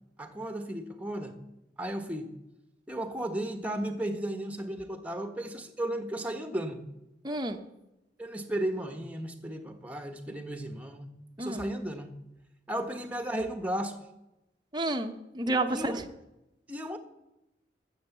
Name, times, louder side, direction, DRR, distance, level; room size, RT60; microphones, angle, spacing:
voice 1, 0.2-1.3 1.8-2.3 2.9-6.8 8.2-11.1 11.4-12.1 12.7-14.0 15.7-16.1 16.7-17.0, right 1 dB, 10° right, 8 dB, 1.3 m, -34 dB
voice 2, 7.2-7.6 11.4-11.6 14.7-16.0, right 2 dB, 25° right, 5 dB, 0.9 m, -30 dB
13.5 x 8.0 x 8.1 m, 0.92 s
head